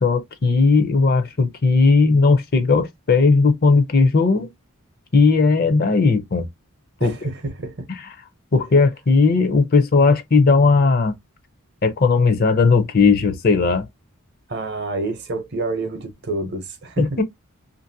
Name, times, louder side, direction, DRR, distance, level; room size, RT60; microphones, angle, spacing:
voice 1, 0.0-4.5 5.1-6.5 7.0-7.2 8.5-11.1 11.8-13.9 17.0-17.2, left 4 dB, 45° left, 0.5 m, -17 dB
voice 2, 7.0-7.9 14.5-17.2, right 2 dB, 50° right, 0.7 m, -28 dB
2.8 x 2.6 x 2.6 m
head